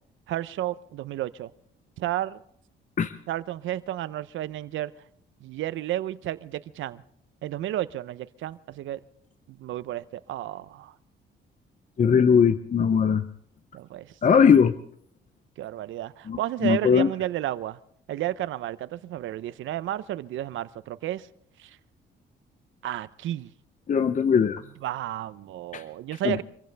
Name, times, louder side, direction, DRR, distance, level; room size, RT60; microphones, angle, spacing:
voice 1, 0.3-1.5 2.0-2.4 3.3-4.9 5.4-7.0 7.4-9.0 9.5-10.9 13.7-14.4 15.6-17.8 18.1-21.3 21.6-21.8 22.8-23.5 24.8-26.4, right 13 dB, 80° right, 0.7 m, -32 dB
voice 2, 12.0-13.2 14.2-14.7 16.3-17.1 23.9-24.6 25.7-25.8 26.2-26.4, left 6 dB, 40° left, 0.7 m, -20 dB
25.0 x 15.5 x 3.4 m
cardioid pair, 90°, 20 cm